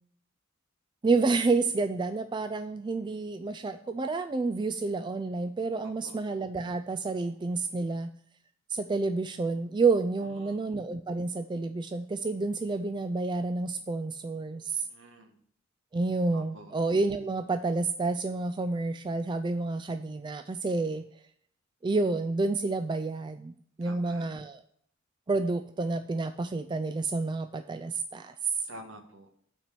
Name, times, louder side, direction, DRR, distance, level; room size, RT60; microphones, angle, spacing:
voice 1, 1.0-8.1 8.7-14.9 15.9-21.1 21.8-24.6 25.3-28.3, right 3 dB, 20° right, 8 dB, 0.3 m, -29 dB
voice 2, 10.2-10.6 14.7-15.3 16.3-16.7 23.8-24.3 28.7-29.3, right 1 dB, 65° right, 5 dB, 1.4 m, -48 dB
8.8 x 4.5 x 6.7 m, 0.63 s
head